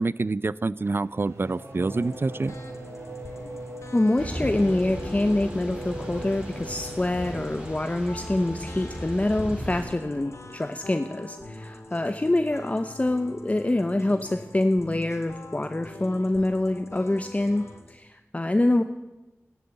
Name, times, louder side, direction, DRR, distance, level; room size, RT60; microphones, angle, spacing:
voice 1, 0.0-2.5, right 3 dB, 50° right, 19 dB, 0.5 m, -27 dB
Race car auto racing / Accelerating revving vroom, 0.8-8.1, right 1 dB, 90° right, 4.1 m, -41 dB
sound 1, 1.8-17.9, left 2 dB, 90° left, 2.3 m, -44 dB
voice 2, 3.9-18.8, left 1 dB, 30° left, 8 dB, 0.8 m, -25 dB
Thunder / Rain, 4.2-9.8, equal, 25° right, 4.9 m, -37 dB
14.5 x 11.0 x 8.9 m, 1.1 s
wide cardioid pair, 60°, 5 cm